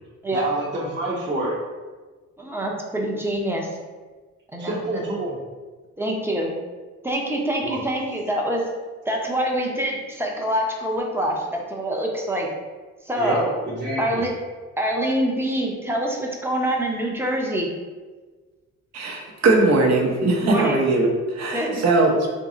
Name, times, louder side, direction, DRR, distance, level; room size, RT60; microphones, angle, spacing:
voice 1, 0.3-1.6 4.6-5.4 7.6-7.8 13.1-14.2, right 1 dB, 35° right, -6 dB, 1.0 m, -27 dB
voice 2, 2.4-3.7 4.5-5.0 6.0-6.5 7.0-8.6 9.1-12.5 13.0-13.5 14.0-14.3 14.8-17.7 20.4-20.8 21.5-21.8, right 1 dB, 10° right, -1 dB, 0.6 m, -25 dB
voice 3, 18.9-22.3, right 2 dB, 60° right, 0 dB, 0.8 m, -20 dB
3.6 x 2.0 x 3.8 m, 1.3 s
cardioid pair, 90°, 30 cm